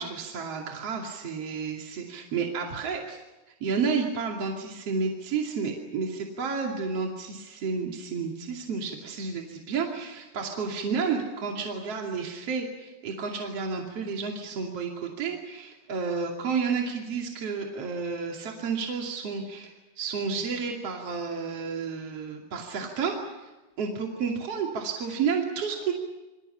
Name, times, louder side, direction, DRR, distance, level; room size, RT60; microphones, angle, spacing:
voice 1, 0.0-3.2 3.5-23.5 23.8-25.9, right 5 dB, 40° right, 0 dB, 2.6 m, -31 dB
27.5 x 26.5 x 5.8 m, 1.1 s
omnidirectional pair, 5.9 m